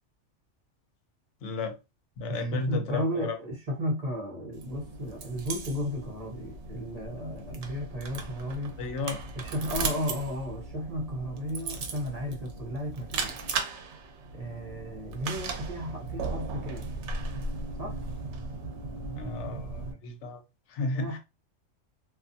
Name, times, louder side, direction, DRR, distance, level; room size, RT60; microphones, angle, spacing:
voice 1, 1.4-1.7 2.2-3.4 8.8-9.2 19.1-20.4 20.7-21.2, left 2 dB, 75° left, 0.9 m, -33 dB
voice 2, 2.3-8.7 9.4-13.3 14.3-16.8 17.8-18.0 20.9-21.2, equal, 40° right, 0.8 m, -34 dB
sound 1, 4.5-19.9, right 4 dB, 75° right, 0.9 m, -37 dB
2.4 x 2.4 x 2.6 m
omnidirectional pair, 1.2 m